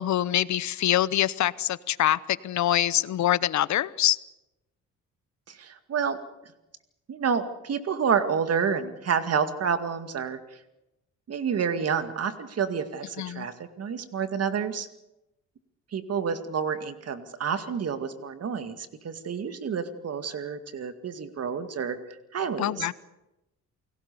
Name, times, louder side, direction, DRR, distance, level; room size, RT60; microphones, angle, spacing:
voice 1, 0.0-4.2 13.2-13.5 22.6-22.9, left 12 dB, 70° left, 18 dB, 0.9 m, -25 dB
voice 2, 5.5-6.2 7.1-10.6 11.3-14.9 15.9-22.0 22.3-22.9, right 6 dB, 55° right, 9 dB, 2.2 m, -29 dB
29.0 x 18.0 x 6.9 m, 0.95 s
cardioid pair, 90°, 30 cm